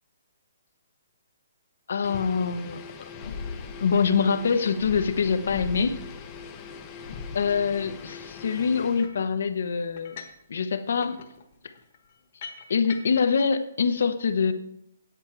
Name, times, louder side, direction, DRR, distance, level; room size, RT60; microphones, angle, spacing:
voice 1, 1.9-2.8 3.8-6.0 7.3-10.2 10.5-11.2 12.7-14.5, left 5 dB, 55° left, 10 dB, 0.9 m, -24 dB
sound 1, 2.0-9.1, left 5 dB, 15° left, 0.7 m, -42 dB
sound 2, 3.2-8.6, left 5 dB, 90° left, 1.4 m, -40 dB
sound 3, 9.0-9.3 10.0-10.5 10.7-13.4, left 6 dB, 35° left, 1.3 m, -44 dB
10.5 x 9.3 x 4.6 m, 0.76 s
hypercardioid pair, 180°, 0 cm